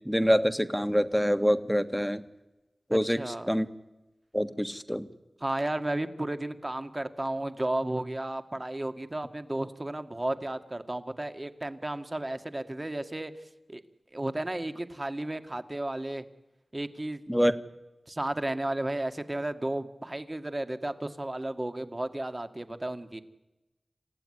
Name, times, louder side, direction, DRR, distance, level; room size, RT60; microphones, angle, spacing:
voice 1, 0.0-2.2 2.9-3.7 4.3-5.1 17.3-17.5, equal, ahead, 10 dB, 1.5 m, -26 dB
voice 2, 2.9-3.5 5.4-13.3 13.7-13.8 14.1-16.3 16.7-17.4 18.1-23.2, right 1 dB, 30° right, 9 dB, 1.9 m, -33 dB
27.0 x 15.5 x 9.8 m, 1.0 s
cardioid pair, 45°, 0 cm